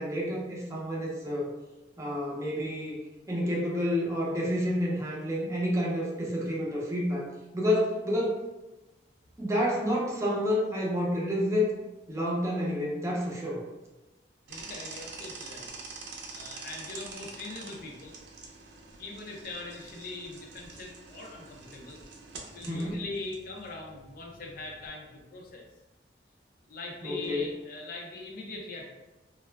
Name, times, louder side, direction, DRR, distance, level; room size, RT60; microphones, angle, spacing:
voice 1, 0.0-1.5 2.0-3.0 3.3-8.5 9.4-11.7 12.1-13.6 22.6-23.0 27.0-27.5, left 1 dB, 15° right, -4 dB, 0.5 m, -29 dB
voice 2, 14.5-15.7 16.3-18.2 19.0-22.0 22.5-25.6 26.7-28.9, left 3 dB, 55° left, 0 dB, 0.4 m, -41 dB
sound 1, 14.5-24.9, right 3 dB, 75° right, 0.5 m, -46 dB
2.3 x 2.1 x 3.2 m, 1.1 s
head